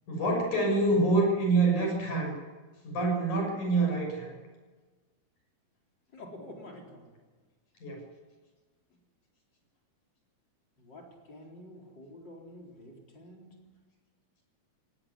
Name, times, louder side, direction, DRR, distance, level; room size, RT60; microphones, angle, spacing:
voice 1, 0.1-2.3 2.8-4.4 7.8-8.0, right 2 dB, 80° left, 2 dB, 8.1 m, -26 dB
voice 2, 6.1-7.1 10.8-13.5, left 1 dB, 35° left, 0 dB, 4.7 m, -48 dB
18.5 x 18.0 x 9.7 m, 1.3 s
omnidirectional pair, 3.5 m